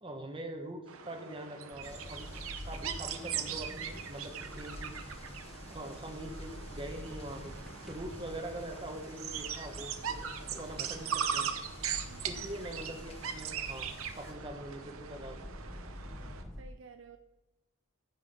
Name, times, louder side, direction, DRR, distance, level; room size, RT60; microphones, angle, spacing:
voice 1, 0.0-4.9 5.2-5.4 5.7-7.5 7.8-11.5 12.2-13.9 14.2-15.4, right 1 dB, 25° right, 3 dB, 1.2 m, -43 dB
sound 1, 0.9-16.4, right 7 dB, 70° right, 0.8 m, -40 dB
sound 2, 1.7-16.6, equal, ahead, 0.8 m, -47 dB
sound 3, 1.8-14.3, left 3 dB, 25° left, 1.1 m, -56 dB
voice 2, 12.1-12.4 16.6-17.2, right 5 dB, 55° right, 7 dB, 0.4 m, -53 dB
14.5 x 6.1 x 3.7 m, 1.0 s
head